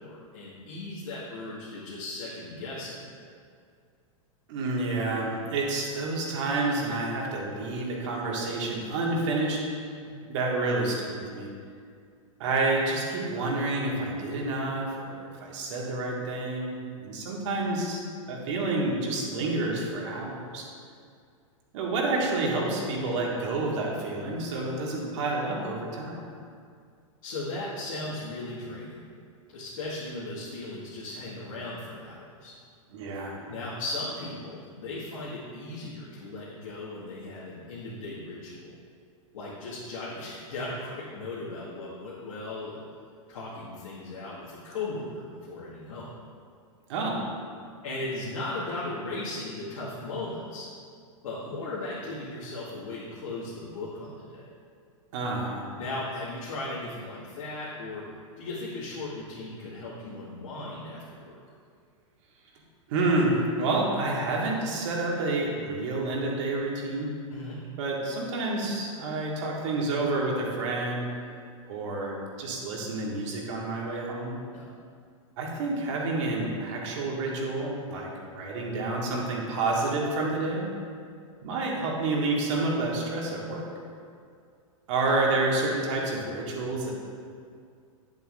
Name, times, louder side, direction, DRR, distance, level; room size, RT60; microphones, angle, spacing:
voice 1, 0.0-3.1 10.0-10.1 27.2-29.0 29.5-32.5 33.5-38.7 39.3-42.8 43.3-46.1 47.8-50.7 51.2-54.5 55.8-58.1 58.4-61.3 67.3-67.5 74.5-74.7, left 2 dB, 75° left, -9 dB, 2.0 m, -37 dB
voice 2, 4.5-9.6 10.3-11.5 12.4-18.0 18.3-20.6 21.7-26.3 32.9-33.4 46.9-47.2 55.1-55.7 62.9-67.1 67.8-71.1 71.7-74.4 75.4-80.6 81.4-83.6 84.9-86.9, right 2 dB, 60° right, -2 dB, 2.0 m, -29 dB
10.0 x 8.1 x 2.6 m, 2.2 s
hypercardioid pair, 110°, 18 cm